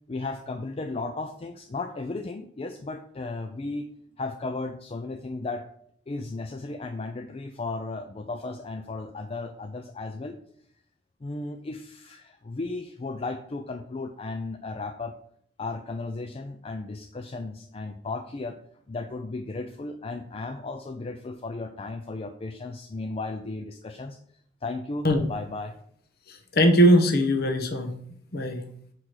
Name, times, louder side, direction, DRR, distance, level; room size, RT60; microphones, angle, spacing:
voice 1, 0.1-3.9 4.2-5.7 6.1-10.4 11.2-15.1 15.6-18.6 18.9-24.2 24.6-25.7, left 3 dB, 30° left, 6 dB, 0.4 m, -35 dB
voice 2, 26.3-27.9 28.3-28.6, equal, 55° left, 5 dB, 0.9 m, -20 dB
5.7 x 4.6 x 6.5 m, 0.66 s
head